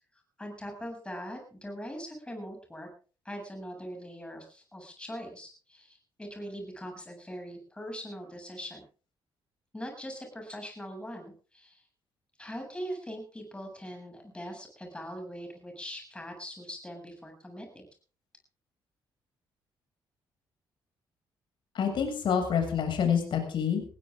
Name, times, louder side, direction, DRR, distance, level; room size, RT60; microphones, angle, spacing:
voice 1, 0.4-2.9 3.2-8.9 9.7-11.8 12.4-17.9, equal, 10° left, 3 dB, 7.8 m, -41 dB
voice 2, 21.7-23.8, left 7 dB, 65° left, 4 dB, 7.0 m, -27 dB
20.0 x 16.5 x 3.8 m, 0.39 s
cardioid pair, 95°, 9 cm